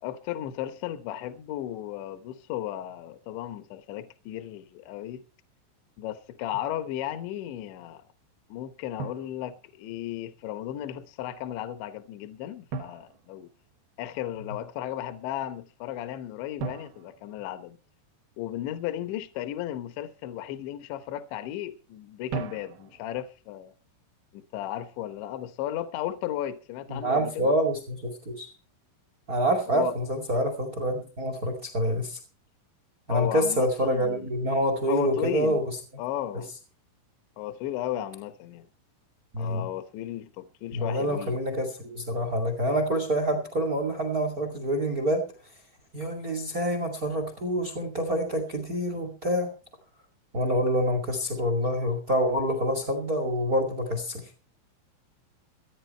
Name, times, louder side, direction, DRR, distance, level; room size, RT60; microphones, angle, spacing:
voice 1, 0.0-5.2 6.0-8.0 8.5-13.5 14.0-17.8 18.4-23.7 24.3-27.5 29.7-29.9 33.1-34.3 34.9-35.6 36.0-36.5 37.4-38.7 39.4-41.4, left 12 dB, 75° left, 2.9 m, -35 dB
Drum, 6.5-6.8 9.0-10.1 12.7-14.1 16.6-18.3 22.3-23.3, right 5 dB, 65° right, 2.7 m, -39 dB
voice 2, 26.9-28.5 29.3-32.2 33.1-35.7 39.3-39.6 40.7-45.2 45.9-49.5 50.3-54.2, equal, 45° right, 1.1 m, -27 dB
21.5 x 9.9 x 4.4 m
omnidirectional pair, 6.0 m